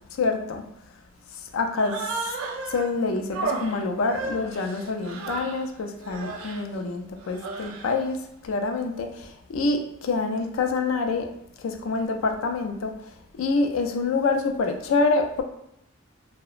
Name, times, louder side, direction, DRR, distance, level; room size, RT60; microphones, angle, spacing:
voice 1, 0.1-0.6 1.3-2.4 2.7-8.2 8.4-11.3 11.6-12.9 13.4-15.4, left 3 dB, 80° left, 5 dB, 0.4 m, -26 dB
Human voice, 1.8-2.9 3.3-5.7 6.0-6.6 7.2-8.0, right 3 dB, 80° right, 0.4 m, -33 dB
2.8 x 2.0 x 2.4 m, 0.78 s
head